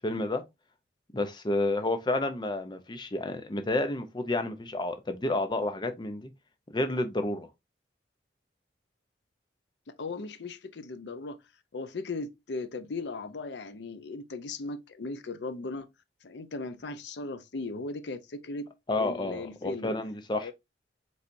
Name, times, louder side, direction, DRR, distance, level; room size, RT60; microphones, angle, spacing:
voice 1, 0.0-0.4 1.1-6.3 6.7-7.5 18.9-20.5, left 2 dB, 25° left, 0.5 m, -30 dB
voice 2, 9.9-11.4 11.7-15.9 16.2-18.7 19.0-19.9 20.4-20.5, left 3 dB, 75° left, 0.6 m, -37 dB
5.3 x 3.2 x 2.6 m
head